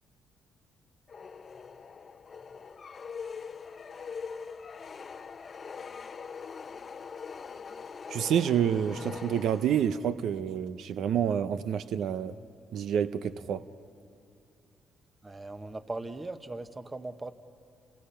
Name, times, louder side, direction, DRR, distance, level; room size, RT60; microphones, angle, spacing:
sound 1, 1.1-10.2, left 5 dB, 40° left, 0.7 m, -42 dB
voice 1, 8.1-12.4 12.7-13.6, right 9 dB, 75° right, 12 dB, 0.6 m, -28 dB
voice 2, 15.2-17.3, right 2 dB, 20° right, 9 dB, 1.2 m, -39 dB
30.0 x 28.0 x 5.7 m, 2.4 s
cardioid pair, 90°, 0 cm